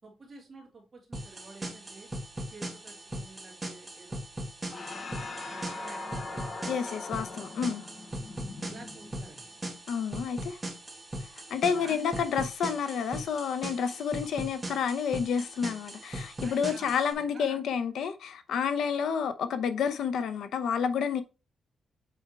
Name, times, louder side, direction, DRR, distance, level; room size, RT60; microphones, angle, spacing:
voice 1, 0.0-2.1 2.5-4.2 4.6-6.6 8.6-9.4 11.7-12.2 16.4-17.6, right 3 dB, 30° right, 2.8 m, -50 dB
sound 1, 1.1-17.1, right 1 dB, 15° right, 1.9 m, -40 dB
sound 2, 4.7-9.5, left 3 dB, 30° left, 1.1 m, -41 dB
voice 2, 6.7-7.9 9.9-10.6 11.5-21.2, left 7 dB, 70° left, 0.7 m, -30 dB
7.8 x 3.6 x 4.6 m
wide cardioid pair, 175°, 0 cm